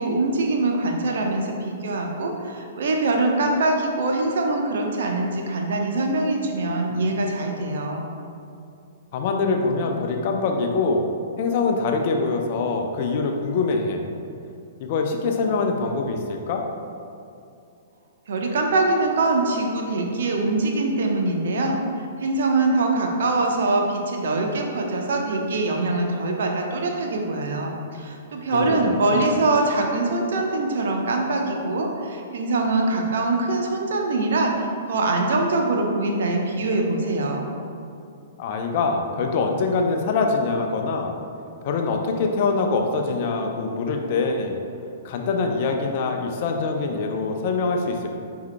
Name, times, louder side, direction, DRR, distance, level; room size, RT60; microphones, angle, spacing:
voice 1, 0.0-8.1 18.3-21.8 22.2-37.5, right 2 dB, 60° right, 1 dB, 0.8 m, -23 dB
voice 2, 9.1-11.0 11.4-14.0 14.8-16.7 28.5-29.3 38.4-41.1 41.6-44.6 45.0-48.1, left 4 dB, 45° left, 3 dB, 0.7 m, -24 dB
9.4 x 4.7 x 2.2 m, 2.6 s
figure-of-eight pair, 110°, 0 cm